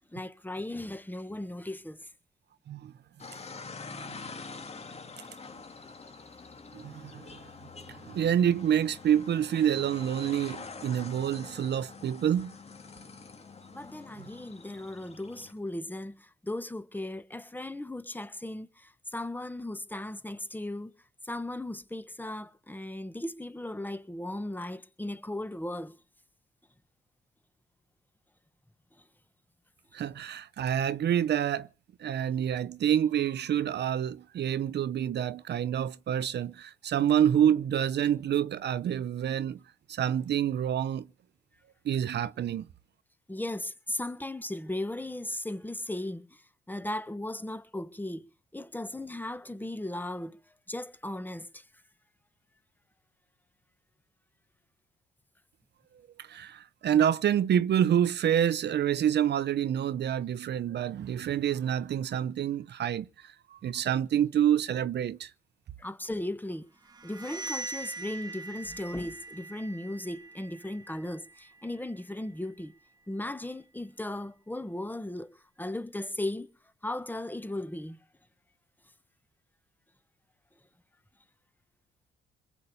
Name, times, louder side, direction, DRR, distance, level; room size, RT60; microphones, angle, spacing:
voice 1, 0.1-2.0 13.7-16.1 16.4-20.9 21.2-25.9 43.3-46.3 46.7-48.2 48.5-50.4 50.7-51.6 65.8-66.6 67.0-72.7 73.1-75.3 75.6-76.5 76.8-78.0, left 1 dB, 10° left, 1.6 m, -36 dB
sound 1, 3.2-15.5, left 4 dB, 30° left, 2.2 m, -46 dB
voice 2, 6.7-7.3 7.9-12.5 29.9-31.7 32.0-39.6 39.9-41.1 41.8-42.7 56.2-65.3, right 9 dB, 60° right, 0.8 m, -27 dB
sound 2, 66.8-72.5, right 2 dB, 20° right, 1.7 m, -43 dB
21.5 x 8.3 x 7.1 m
cardioid pair, 90°, 20 cm